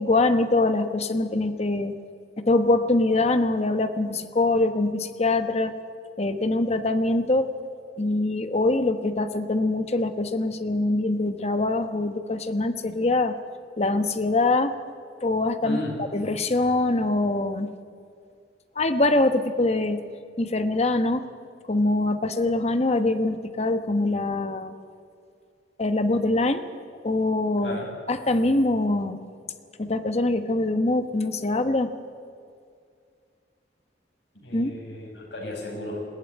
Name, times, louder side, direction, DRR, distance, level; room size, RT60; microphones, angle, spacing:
voice 1, 0.0-2.0 2.4-5.7 6.2-7.5 8.0-13.4 13.8-14.7 15.2-15.8 16.1-17.7 18.8-20.0 20.4-21.2 21.7-24.8 25.8-26.6 27.0-27.8 28.1-29.2 29.8-31.9 34.5-34.7, left 2 dB, 35° left, 9 dB, 1.1 m, -23 dB
voice 2, 15.6-16.0 27.6-27.9 34.4-36.1, left 1 dB, 80° left, 0 dB, 5.8 m, -34 dB
20.5 x 15.5 x 9.6 m, 2.3 s
head